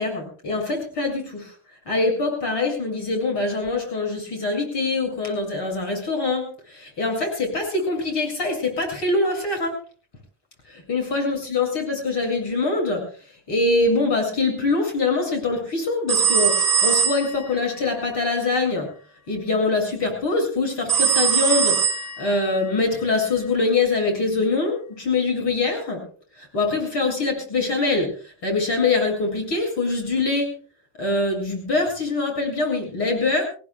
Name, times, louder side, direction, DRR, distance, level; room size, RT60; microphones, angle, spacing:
voice 1, 0.0-1.5 1.9-9.7 10.7-13.0 13.5-18.9 19.3-26.0 26.4-28.1 28.4-30.5 31.0-33.4, left 3 dB, 65° left, 4 dB, 7.3 m, -24 dB
sound 1, 16.1-17.5 20.9-22.5, right 6 dB, ahead, 4.2 m, -21 dB
25.5 x 17.5 x 2.4 m, 0.37 s
cardioid pair, 155°, 46 cm